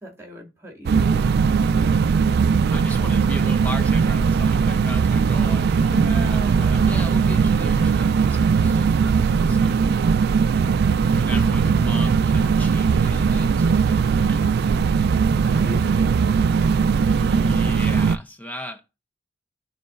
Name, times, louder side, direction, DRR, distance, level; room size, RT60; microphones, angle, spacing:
voice 1, 0.0-1.4 5.8-7.2 11.4-11.7 15.1-16.2, equal, 15° right, 2.0 m, -37 dB
sound 1, 0.9-18.2, right 5 dB, 55° right, 0.3 m, -19 dB
voice 2, 2.7-9.8 11.1-14.4 17.1-18.8, left 1 dB, 10° left, 0.6 m, -36 dB
11.5 x 3.9 x 2.4 m
head